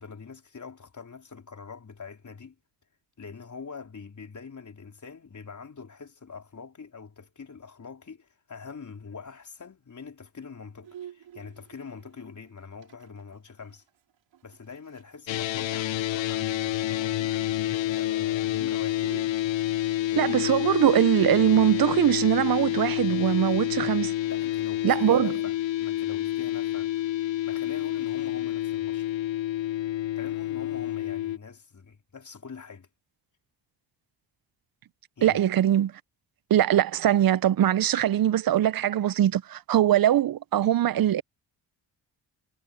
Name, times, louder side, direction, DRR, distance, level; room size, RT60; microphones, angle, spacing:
voice 1, 0.0-2.6 3.2-13.8 14.4-19.0 24.3-27.1 27.4-29.2 30.2-32.9 35.2-35.4, left 5 dB, 40° left, 4.3 m, -44 dB
Bowed string instrument, 10.8-15.2 15.5-15.6 15.8-16.2 16.4-19.3, right 10 dB, 75° right, 2.7 m, -50 dB
sound 1, 15.3-31.4, left 14 dB, 75° left, 0.9 m, -28 dB
voice 2, 20.2-24.1 24.8-25.4 35.2-35.9 36.5-41.2, right 11 dB, 50° right, 0.7 m, -22 dB
cardioid pair, 75°, 45 cm